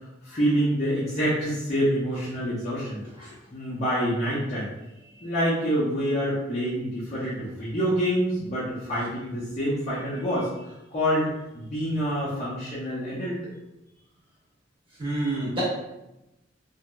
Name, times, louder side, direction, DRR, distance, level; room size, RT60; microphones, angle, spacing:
voice 1, 0.2-4.7 5.2-13.4, equal, 35° left, -9 dB, 0.6 m, -27 dB
voice 2, 15.0-15.6, right 2 dB, 25° right, -7 dB, 0.9 m, -30 dB
3.0 x 2.6 x 2.3 m, 0.93 s
head